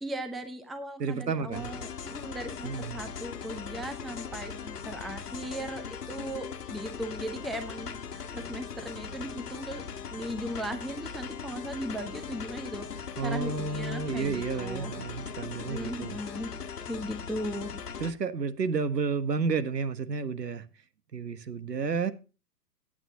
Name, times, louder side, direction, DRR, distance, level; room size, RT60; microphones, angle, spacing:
voice 1, 0.0-9.8 10.1-14.9 15.6-16.5 16.9-17.7, equal, ahead, 0.5 m, -38 dB
voice 2, 1.0-1.7 2.6-3.0 13.2-16.2 18.0-20.7 21.1-22.1, right 5 dB, 80° right, 1.4 m, -31 dB
sound 1, 1.5-18.1, left 6 dB, 65° left, 1.6 m, -40 dB
16.0 x 9.3 x 2.7 m
figure-of-eight pair, 115°, 49 cm